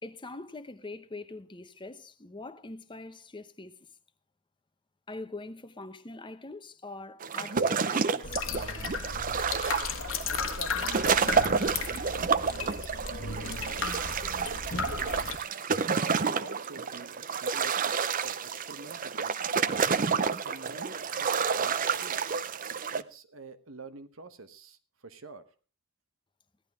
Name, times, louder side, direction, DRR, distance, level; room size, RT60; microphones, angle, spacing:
voice 1, 0.0-3.9 5.1-8.5, left 2 dB, 25° left, 0.8 m, -43 dB
sound 1, 7.2-23.0, right 6 dB, 40° right, 0.6 m, -29 dB
sound 2, 8.2-15.4, left 5 dB, 80° left, 1.4 m, -35 dB
voice 2, 10.3-11.4 11.8-14.6 15.0-15.5 15.9-18.0 18.2-19.7 20.3-22.5 22.9-24.8 25.0-25.4, right 3 dB, 80° right, 1.2 m, -47 dB
16.5 x 11.5 x 3.6 m
head